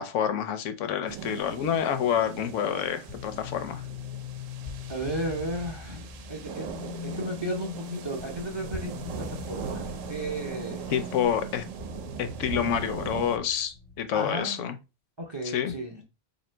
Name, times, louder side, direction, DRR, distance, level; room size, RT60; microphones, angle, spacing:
voice 1, 0.0-3.8 10.9-11.6 12.2-14.8 15.5-15.7, left 9 dB, 75° left, 0.9 m, -28 dB
sound 1, 1.1-13.4, right 8 dB, 90° right, 1.0 m, -40 dB
sound 2, 3.1-14.4, left 4 dB, 45° left, 0.5 m, -41 dB
voice 2, 4.9-10.9 14.1-14.6 15.2-16.0, right 1 dB, 40° right, 0.4 m, -34 dB
2.9 x 2.7 x 4.4 m
omnidirectional pair, 1.3 m